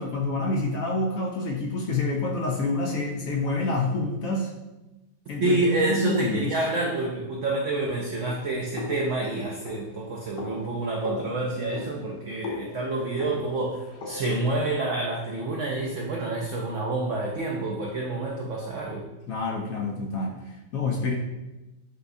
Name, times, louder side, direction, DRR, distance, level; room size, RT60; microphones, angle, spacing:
voice 1, 0.0-4.5 5.3-6.6 19.3-21.1, left 2 dB, 70° left, -1 dB, 0.8 m, -28 dB
voice 2, 5.4-19.0, right 2 dB, 80° right, -1 dB, 0.6 m, -28 dB
sound 1, 8.8-14.5, left 3 dB, 90° left, 1.3 m, -39 dB
6.4 x 2.3 x 2.6 m, 1.0 s
omnidirectional pair, 1.8 m